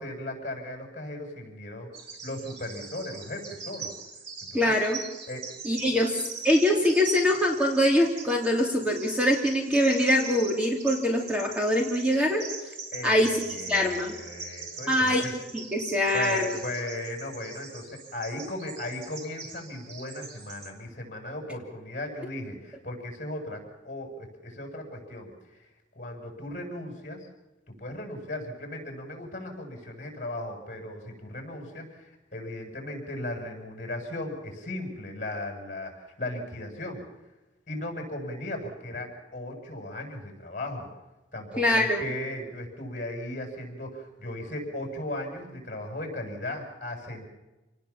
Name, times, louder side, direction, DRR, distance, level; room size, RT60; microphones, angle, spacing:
voice 1, 0.0-1.9 2.2-3.9 4.5-4.8 5.3-5.4 12.9-15.3 16.1-25.7 25.9-27.3 27.7-37.0 37.7-40.9 41.3-47.3, left 1 dB, 45° left, 3 dB, 7.6 m, -37 dB
Bird vocalization bird call bird song, 1.9-20.7, right 4 dB, 85° right, 5.7 m, -41 dB
voice 2, 4.5-5.0 5.6-12.4 13.0-13.3 13.7-14.1 14.9-15.3 15.5-16.6 41.6-42.0, left 1 dB, 5° right, 1 dB, 2.9 m, -23 dB
28.0 x 19.5 x 7.4 m, 1.1 s
head